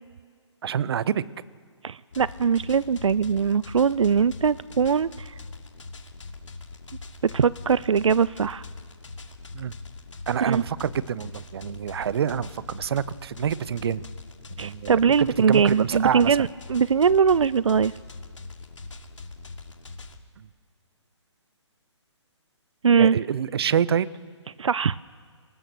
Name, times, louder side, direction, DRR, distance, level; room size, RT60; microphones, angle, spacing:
voice 1, 0.6-1.2 9.5-9.7 10.3-14.0 14.6-16.5 20.4-20.5 23.0-24.1, right 8 dB, 55° right, 19 dB, 0.8 m, -27 dB
voice 2, 1.8-5.3 7.3-8.7 10.4-10.6 14.6-17.9 22.8-23.2 24.6-25.0, right 6 dB, 80° right, 20 dB, 0.5 m, -21 dB
sound 1, 2.1-20.2, left 3 dB, 80° left, 2.6 m, -42 dB
24.0 x 19.5 x 6.8 m, 2.1 s
figure-of-eight pair, 140°, 16 cm